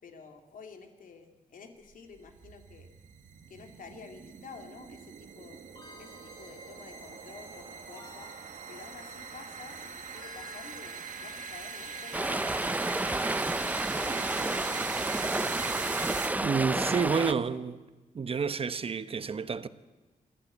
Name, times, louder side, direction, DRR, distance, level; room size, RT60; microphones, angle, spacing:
voice 1, 0.0-2.9 3.5-5.6 6.0-8.4 8.7-12.9 13.4-15.9 16.6-17.7, left 5 dB, 75° left, 2.6 m, -50 dB
sound 1, 1.9-16.8, right 7 dB, 65° right, 1.5 m, -42 dB
sound 2, 5.7-14.5, left 5 dB, 30° left, 1.7 m, -52 dB
Stream, 12.1-17.3, right 2 dB, 10° right, 0.6 m, -30 dB
voice 2, 16.4-17.7 18.1-19.7, right 5 dB, 45° right, 0.9 m, -29 dB
26.0 x 11.5 x 10.0 m
wide cardioid pair, 110°, 14 cm